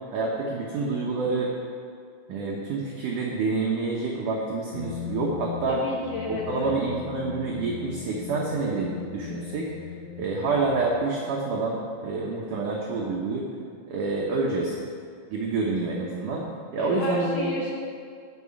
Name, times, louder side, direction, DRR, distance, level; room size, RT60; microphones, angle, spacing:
voice 1, 0.1-1.5 2.3-5.8 6.3-9.7 10.2-13.5 13.9-14.8 15.3-16.4 16.7-17.5, right 3 dB, 75° right, -2 dB, 1.8 m, -27 dB
sound 1, 4.7-11.3, left 11 dB, 80° left, 2.9 m, -39 dB
voice 2, 5.7-6.8 16.8-17.7, left 2 dB, 60° left, -4 dB, 2.6 m, -33 dB
11.0 x 6.2 x 8.5 m, 2.2 s
omnidirectional pair, 5.2 m